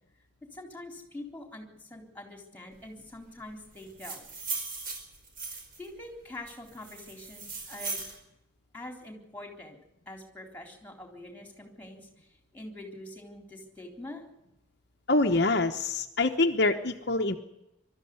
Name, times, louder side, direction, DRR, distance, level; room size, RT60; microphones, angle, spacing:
voice 1, 0.5-4.4 5.8-8.0 8.7-9.8 10.1-14.2, left 1 dB, 10° left, 3 dB, 3.7 m, -45 dB
sound 1, 3.8-5.9 6.5-8.2, right 4 dB, 45° right, 5.1 m, -38 dB
voice 2, 15.1-17.4, left 2 dB, 55° left, 4 dB, 1.1 m, -25 dB
22.5 x 13.0 x 9.6 m, 0.89 s
head